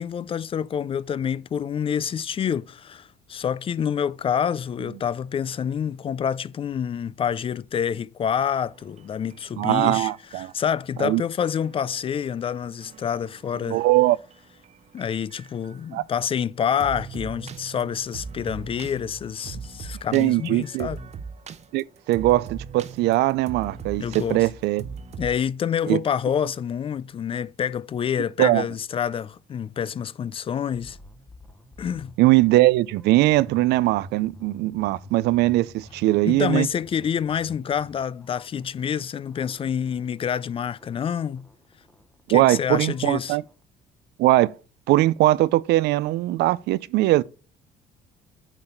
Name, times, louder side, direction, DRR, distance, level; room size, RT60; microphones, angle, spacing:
voice 1, 0.0-13.8 14.9-21.0 24.0-24.5 25.2-31.0 31.8-32.1 36.2-41.5 42.3-43.4, left 8 dB, 35° left, 0.3 m, -27 dB
sound 1, 8.7-10.5 11.5-15.9 16.8-25.4, right 5 dB, 40° right, 0.8 m, -41 dB
voice 2, 9.6-10.5 11.0-11.2 13.7-14.2 15.9-16.0 20.1-20.9 21.7-24.8 25.9-26.0 28.4-28.6 32.2-36.7 42.3-43.4 44.2-44.5 44.9-47.2, right 17 dB, 80° right, 0.4 m, -20 dB
sound 2, 30.7-43.6, left 2 dB, 10° left, 1.0 m, -49 dB
8.9 x 4.1 x 4.4 m
cardioid pair, 110°, 17 cm